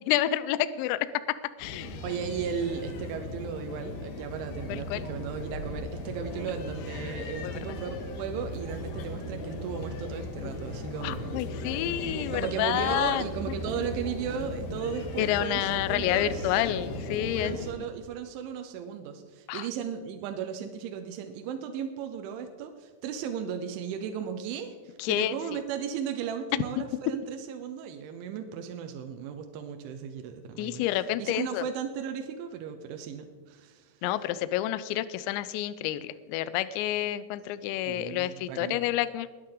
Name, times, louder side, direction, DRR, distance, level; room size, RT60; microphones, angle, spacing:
voice 1, 0.1-1.1 1.6-2.0 4.7-5.0 7.4-7.5 11.0-13.2 15.2-17.7 19.5-19.7 25.0-25.4 30.6-31.7 34.0-39.3, left 13 dB, 80° left, 14 dB, 2.7 m, -29 dB
sound 1, 1.6-17.7, left 2 dB, 65° left, 3.3 m, -37 dB
voice 2, 2.0-11.4 12.3-16.6 17.2-30.8 31.2-34.0 37.9-38.8, right 7 dB, 80° right, 6 dB, 3.2 m, -36 dB
21.5 x 9.6 x 3.8 m, 1.3 s
omnidirectional pair, 5.7 m